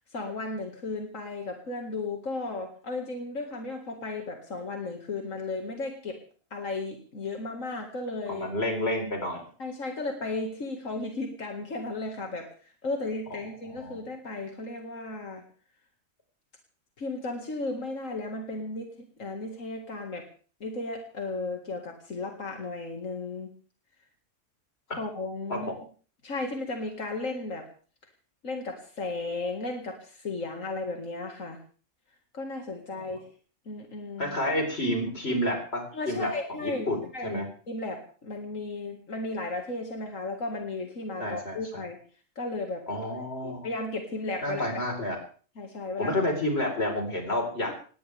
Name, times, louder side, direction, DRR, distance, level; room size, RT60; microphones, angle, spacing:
voice 1, 0.1-6.2 6.5-8.5 9.6-12.5 12.8-15.4 17.0-18.9 19.2-20.2 20.6-23.5 25.0-25.7 26.2-27.7 28.4-31.6 32.3-33.2 33.7-34.4 35.9-36.9 37.1-42.0 42.4-42.8 43.4-44.6 45.6-46.1, left 2 dB, 90° left, 2 dB, 2.5 m, -34 dB
voice 2, 8.3-9.4 13.7-14.0 25.5-25.6 33.1-33.2 34.2-36.3 36.6-37.0 37.2-37.5 41.2-41.6 42.9-43.7 44.4-45.2 46.0-47.7, left 1 dB, 55° left, 2 dB, 4.9 m, -29 dB
20.0 x 18.0 x 3.5 m, 0.41 s
omnidirectional pair, 1.3 m